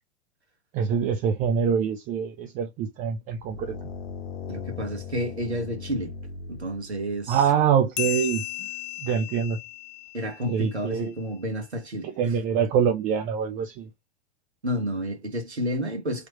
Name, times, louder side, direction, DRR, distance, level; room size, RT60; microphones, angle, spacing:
voice 1, 0.7-3.8 7.3-8.7 9.0-9.6 10.5-11.1 12.0-13.9, right 7 dB, 25° right, 0.4 m, -25 dB
sound 1, 3.4-7.7, left 5 dB, 65° left, 0.8 m, -39 dB
voice 2, 4.5-6.1 6.5-7.4 10.1-12.4 14.6-16.3, equal, 80° right, 1.3 m, -30 dB
sound 2, 8.0-11.0, left 17 dB, 40° left, 0.4 m, -35 dB
3.2 x 3.0 x 2.9 m
figure-of-eight pair, 90°, 32 cm